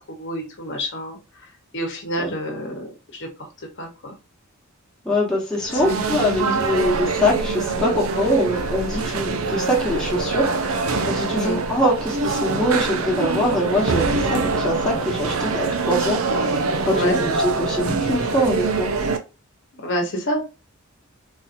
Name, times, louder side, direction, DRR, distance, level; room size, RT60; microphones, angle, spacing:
voice 1, 0.1-1.2 1.7-3.5 3.8-4.1 5.7-6.6 11.3-11.6 16.9-17.2 19.8-20.4, equal, 55° left, 1.0 m, -28 dB
voice 2, 5.0-18.9, equal, 5° left, 1.2 m, -23 dB
sound 1, 5.5-19.2, right 4 dB, 75° right, 0.6 m, -24 dB
4.0 x 2.8 x 2.5 m
head